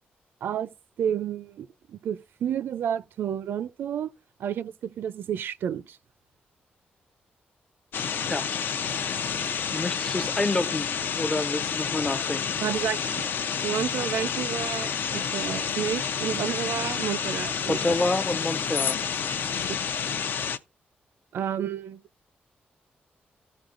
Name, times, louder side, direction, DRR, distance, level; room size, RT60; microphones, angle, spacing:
voice 1, 0.4-4.1 4.4-6.0 12.6-13.3 13.6-18.0 21.3-22.0, right 9 dB, 80° right, 0.4 m, -31 dB
sound 1, 7.9-20.6, left 7 dB, 70° left, 0.5 m, -29 dB
voice 2, 9.7-12.6 17.7-19.0, left 2 dB, 20° left, 0.5 m, -28 dB
15.0 x 5.4 x 2.5 m
wide cardioid pair, 160°, 4 cm